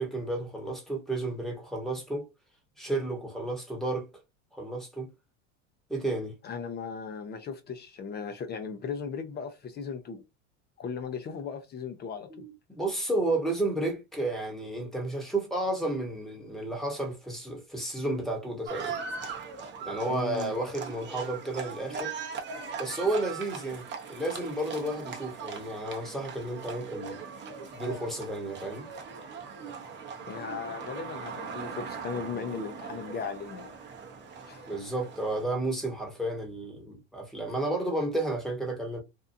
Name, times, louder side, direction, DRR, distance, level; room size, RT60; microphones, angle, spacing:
voice 1, 0.0-2.2 2.8-4.1 4.5-5.1 5.9-6.3 12.3-19.0 19.9-22.1 22.8-27.2 27.7-28.9 34.7-39.0, right 2 dB, ahead, 1.1 m, -32 dB
voice 2, 6.4-10.2 10.8-12.5 20.1-20.5 30.2-33.7 34.4-34.6, left 6 dB, 30° left, 0.6 m, -37 dB
Livestock farm animals working animals, 18.6-35.5, right 5 dB, 35° right, 0.8 m, -40 dB
2.7 x 2.3 x 2.6 m
supercardioid pair, 100°, 33 cm